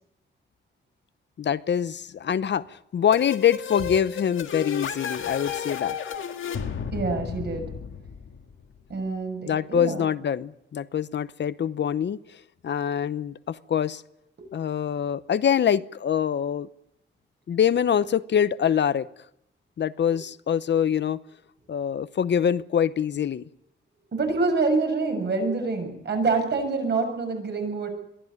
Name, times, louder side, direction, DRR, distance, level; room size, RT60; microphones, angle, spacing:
voice 1, 1.4-6.0 9.5-14.0 14.5-16.7 17.5-19.1 19.8-21.2 21.7-23.4, left 8 dB, 60° left, 15 dB, 0.8 m, -25 dB
sound 1, 3.1-8.8, left 8 dB, 75° left, 1.8 m, -33 dB
voice 2, 6.9-7.7 8.9-10.1 24.1-27.9, right 3 dB, 55° right, 4 dB, 6.8 m, -26 dB
22.5 x 14.5 x 9.6 m, 0.82 s
wide cardioid pair, 110°, 20 cm